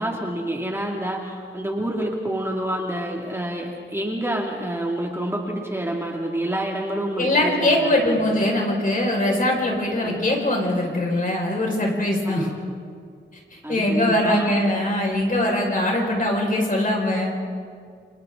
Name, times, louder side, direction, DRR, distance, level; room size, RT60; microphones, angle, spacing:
voice 1, 0.0-8.4 10.0-10.2 12.3-12.6 13.6-14.5, right 1 dB, 10° right, -1 dB, 2.3 m, -28 dB
voice 2, 7.2-12.5 13.5-17.3, left 1 dB, 45° left, -1 dB, 5.3 m, -22 dB
29.0 x 28.0 x 3.9 m, 2.2 s
wide cardioid pair, 130°, 20 cm